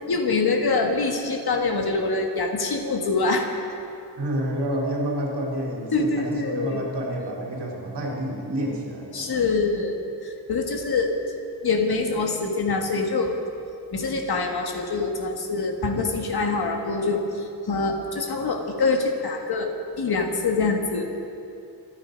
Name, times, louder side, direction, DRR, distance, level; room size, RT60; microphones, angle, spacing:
voice 1, 0.0-3.5 5.9-6.8 9.1-10.0 10.2-11.1 11.6-13.4 13.9-19.7 19.9-21.2, left 3 dB, 65° left, 3 dB, 1.8 m, -25 dB
voice 2, 4.2-9.3, right 1 dB, 85° right, -2 dB, 3.5 m, -29 dB
27.0 x 9.8 x 5.3 m, 2.6 s
wide cardioid pair, 145°, 41 cm